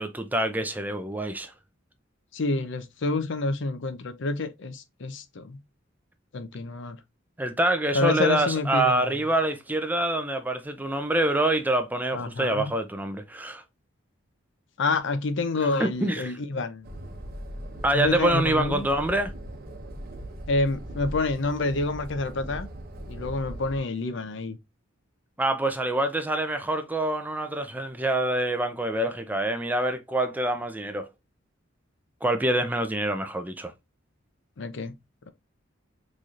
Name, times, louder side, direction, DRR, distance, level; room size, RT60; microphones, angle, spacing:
voice 1, 0.0-1.5 7.4-13.6 15.6-16.3 17.8-19.3 25.4-31.1 32.2-33.7, right 1 dB, 10° right, 0.4 m, -26 dB
voice 2, 2.3-5.6 6.3-7.0 7.9-9.1 12.1-12.7 14.8-16.9 17.9-18.9 20.5-22.7 23.1-24.6 34.6-34.9, left 3 dB, 65° left, 0.6 m, -28 dB
sound 1, 16.8-23.8, right 1 dB, 50° right, 0.9 m, -39 dB
4.0 x 3.1 x 2.4 m
head